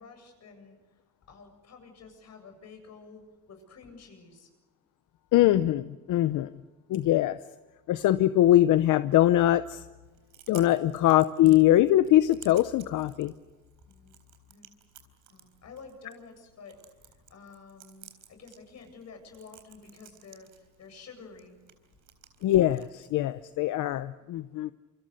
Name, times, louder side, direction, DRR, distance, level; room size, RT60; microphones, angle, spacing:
voice 1, 0.0-4.5 13.9-14.1 14.5-14.7 15.3-21.6, left 4 dB, 60° left, 5 dB, 7.9 m, -50 dB
voice 2, 5.3-6.5 6.9-7.4 7.9-9.8 10.5-13.3 22.4-24.7, left 13 dB, 85° left, 13 dB, 0.8 m, -22 dB
Chewing mastication, 10.0-24.0, right 10 dB, 85° right, 4.2 m, -56 dB
28.0 x 25.5 x 6.7 m, 1.2 s
cardioid pair, 90°, 30 cm